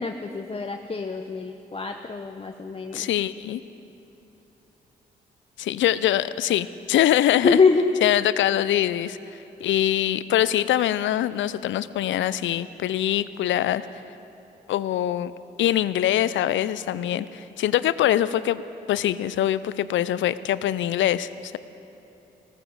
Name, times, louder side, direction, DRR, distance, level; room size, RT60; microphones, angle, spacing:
voice 1, 0.0-3.1 7.4-8.2, left 4 dB, 25° left, 4 dB, 0.8 m, -24 dB
voice 2, 2.9-3.6 5.6-7.6 8.0-9.2 9.6-13.9 14.7-15.3 15.6-18.6 18.9-21.6, left 12 dB, 65° left, 16 dB, 0.5 m, -23 dB
18.5 x 14.5 x 4.8 m, 2.9 s
hypercardioid pair, 45°, 21 cm